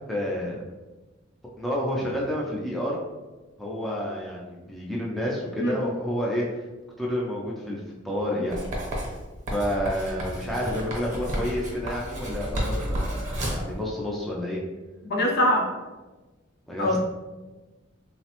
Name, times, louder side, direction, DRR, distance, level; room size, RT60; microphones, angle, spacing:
voice 1, 0.1-0.6 1.6-3.0 3.6-6.5 7.0-7.8 8.0-8.6 9.5-14.6 16.7-17.0, equal, ahead, -4 dB, 0.3 m, -29 dB
Writing, 8.5-13.7, equal, 40° right, 0.7 m, -31 dB
voice 2, 15.0-15.7 16.8-17.0, left 1 dB, 55° left, 0 dB, 0.5 m, -22 dB
3.1 x 2.0 x 2.9 m, 1.2 s
head